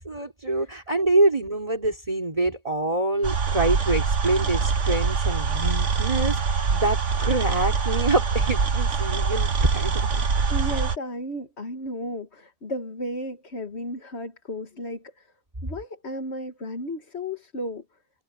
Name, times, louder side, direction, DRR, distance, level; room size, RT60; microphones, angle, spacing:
voice 1, 0.1-10.7, right 2 dB, 30° right, 3.6 m, -26 dB
sound 1, 3.2-11.0, right 5 dB, 85° right, 1.8 m, -24 dB
voice 2, 10.5-15.3 15.6-17.8, equal, 65° left, 2.3 m, -34 dB
omnidirectional pair, 1.2 m